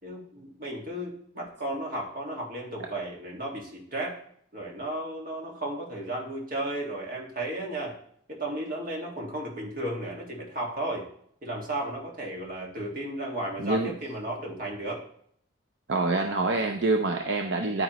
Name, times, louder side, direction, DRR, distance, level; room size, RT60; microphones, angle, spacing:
voice 1, 0.0-4.2 4.5-8.0 8.3-11.1 11.4-15.0, right 1 dB, 45° right, -1 dB, 1.9 m, -34 dB
voice 2, 13.6-14.0 15.9-17.8, right 3 dB, 70° right, 3 dB, 0.7 m, -26 dB
9.7 x 9.1 x 3.1 m, 0.65 s
head